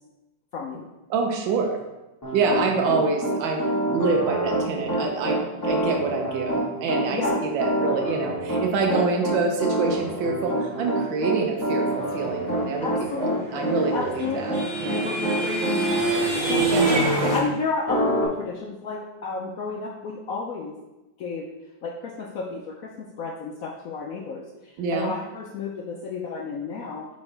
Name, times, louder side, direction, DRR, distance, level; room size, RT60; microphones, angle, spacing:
voice 1, 0.5-0.9 7.1-7.4 12.8-20.8 21.2-21.5 21.8-27.1, left 4 dB, 70° left, 0 dB, 0.8 m, -32 dB
voice 2, 1.1-1.8 2.3-15.1 16.7-17.3 24.8-25.1, right 4 dB, 80° right, 2 dB, 1.5 m, -26 dB
Piano, 2.2-17.4 17.9-18.3, right 1 dB, 15° left, 1.0 m, -27 dB
sound 1, 13.5-17.4, right 2 dB, 25° right, 1.8 m, -25 dB
8.5 x 3.9 x 3.3 m, 1.0 s
omnidirectional pair, 2.1 m